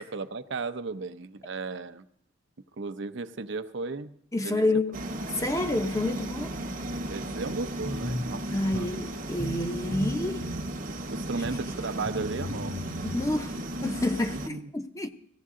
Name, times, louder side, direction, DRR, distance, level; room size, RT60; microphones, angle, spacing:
voice 1, 0.0-2.0 2.8-4.1 4.4-4.6 6.1-6.2 7.1-8.9 9.1-9.2 11.1-12.8 14.3-14.7, right 3 dB, 60° right, 0.6 m, -35 dB
voice 2, 4.3-5.0 5.4-6.5 8.5-10.4 13.0-15.1, left 2 dB, 15° left, 0.7 m, -29 dB
sound 1, 4.9-14.5, right 1 dB, 40° right, 1.0 m, -35 dB
sound 2, 7.8-8.3 8.7-8.8 9.4-9.7 9.9-10.7 11.4-11.5 12.0-13.3, left 1 dB, 75° left, 2.8 m, -35 dB
18.0 x 15.5 x 3.7 m
head